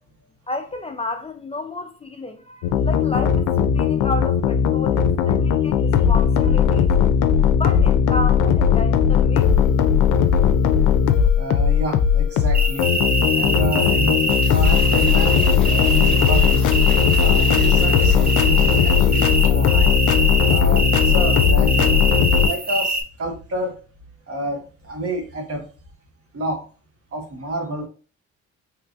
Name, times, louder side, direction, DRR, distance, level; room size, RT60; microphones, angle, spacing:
voice 1, 0.5-6.9 7.6-9.4, left 2 dB, 20° left, 0.3 m, -31 dB
sound 1, 2.6-22.5, left 7 dB, 85° left, 0.5 m, -17 dB
voice 2, 11.4-12.9 13.3-14.2 14.5-16.7 17.2-19.9 20.5-22.0 22.4-23.8 24.3-25.7 26.3-26.6 27.1-27.9, right 1 dB, 50° right, 1.2 m, -29 dB
sound 2, 12.5-23.0, right 1 dB, 30° right, 0.9 m, -23 dB
Cheering / Applause / Crowd, 14.3-19.5, left 2 dB, 5° left, 1.1 m, -39 dB
3.7 x 3.1 x 2.4 m
cardioid pair, 90°, 30 cm